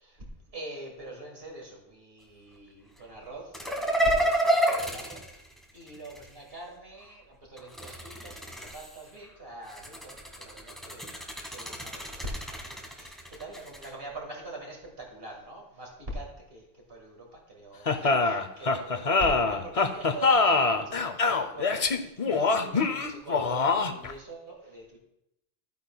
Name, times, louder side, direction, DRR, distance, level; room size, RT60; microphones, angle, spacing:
voice 1, 0.5-5.5 5.7-11.1 11.5-12.6 12.9-25.0, right 1 dB, 70° right, 0 dB, 2.2 m, -43 dB
sound 1, 3.5-6.3 7.6-9.1 9.7-13.9, right 1 dB, ahead, 1.3 m, -30 dB
sound 2, 17.9-24.1, left 4 dB, 40° left, 0.6 m, -24 dB
13.5 x 9.4 x 2.3 m, 0.83 s
omnidirectional pair, 1.0 m